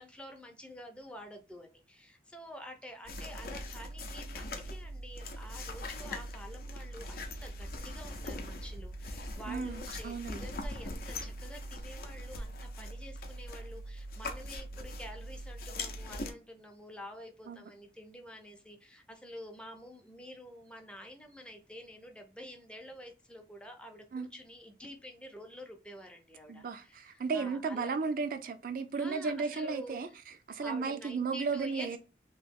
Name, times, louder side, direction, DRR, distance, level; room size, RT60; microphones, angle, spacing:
voice 1, 0.0-28.0 28.9-30.2 30.6-32.0, equal, 5° left, 0.5 m, -48 dB
sound 1, 3.0-16.3, left 1 dB, 50° left, 0.6 m, -41 dB
voice 2, 9.5-10.5 17.5-17.6 24.1-24.3 26.5-32.0, right 4 dB, 50° right, 0.3 m, -34 dB
3.0 x 2.7 x 3.5 m
head